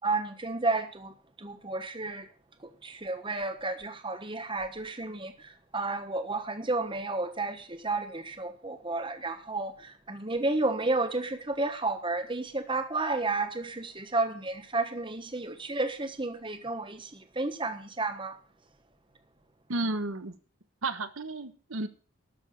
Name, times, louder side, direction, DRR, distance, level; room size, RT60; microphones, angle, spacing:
voice 1, 0.0-1.1 1.4-2.2 2.8-5.3 5.7-17.1 17.4-18.3, right 2 dB, 25° right, 1.2 m, -31 dB
voice 2, 19.7-20.3 20.8-21.9, right 2 dB, 70° right, 1.1 m, -32 dB
12.5 x 7.1 x 8.4 m
head